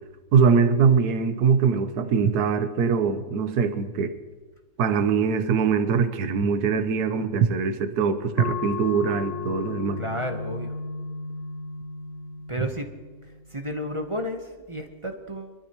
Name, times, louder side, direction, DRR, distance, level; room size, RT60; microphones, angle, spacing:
voice 1, 0.3-4.1 4.8-10.0 12.6-12.7, right 6 dB, 65° right, 10 dB, 1.3 m, -22 dB
sound 1, 8.4-13.5, left 4 dB, 55° left, 1.0 m, -35 dB
voice 2, 10.0-10.7 12.5-12.9 13.5-15.5, equal, 25° right, 4 dB, 0.8 m, -32 dB
24.0 x 12.5 x 3.0 m, 1.3 s
omnidirectional pair, 1.8 m